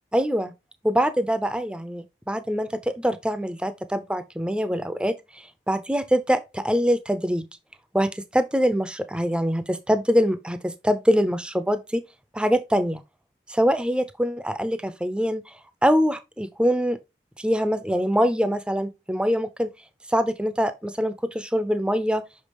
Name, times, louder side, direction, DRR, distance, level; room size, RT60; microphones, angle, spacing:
voice 1, 0.1-0.5 0.8-7.5 7.9-12.0 12.3-13.0 13.5-15.4 15.8-17.0 17.4-19.7 20.1-22.2, equal, 5° right, 0.6 m, -24 dB
6.0 x 5.3 x 3.0 m
head